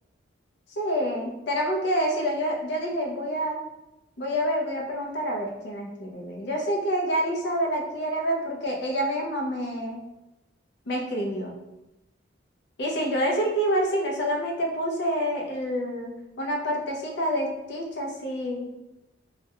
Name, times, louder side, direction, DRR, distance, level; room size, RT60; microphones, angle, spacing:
voice 1, 0.8-3.6 4.2-10.0 10.9-11.5 12.8-18.7, equal, 60° left, 0 dB, 0.5 m, -27 dB
2.3 x 2.1 x 2.8 m, 0.94 s
head